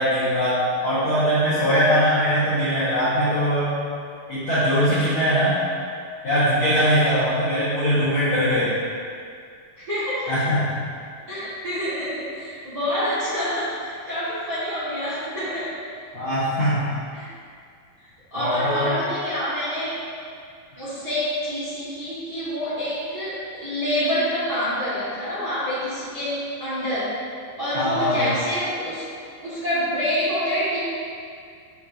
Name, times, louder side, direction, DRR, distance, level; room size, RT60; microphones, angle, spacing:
voice 1, 0.0-3.7 4.3-5.6 6.2-8.8 10.3-10.7 16.1-16.9 18.4-18.9 27.7-28.3, equal, 50° left, -14 dB, 1.8 m, -21 dB
voice 2, 9.9-10.3 11.3-15.7 17.1-17.3 18.0-20.0 20.7-27.1 27.6-29.0 29.4-30.8, equal, 40° right, -13 dB, 1.4 m, -27 dB
7.0 x 6.5 x 2.7 m, 2.2 s
omnidirectional pair, 4.3 m